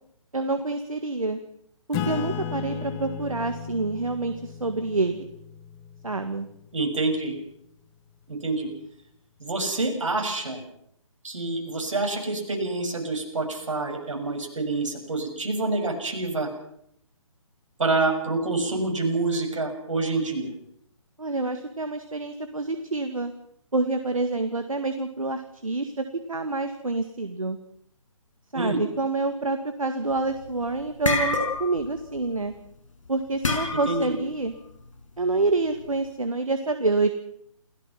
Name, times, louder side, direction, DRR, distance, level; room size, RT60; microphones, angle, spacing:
voice 1, 0.3-1.4 1.9-5.3 6.0-6.5 21.2-23.3 23.7-27.6 28.5-32.5 33.1-34.5 35.2-37.1, right 3 dB, 80° right, 7 dB, 2.0 m, -27 dB
Acoustic guitar / Strum, 1.9-6.9, left 8 dB, 20° left, 1.7 m, -35 dB
voice 2, 6.7-7.3 8.3-8.7 9.4-10.6 11.2-16.5 17.8-20.5 28.5-28.8 33.7-34.2, right 3 dB, 65° right, 3 dB, 6.7 m, -27 dB
sound 1, 30.2-30.5 30.8-31.9 32.2-32.4 33.4-34.1, left 3 dB, 70° left, 5.6 m, -26 dB
28.5 x 17.0 x 5.8 m, 0.71 s
figure-of-eight pair, 140°, 17 cm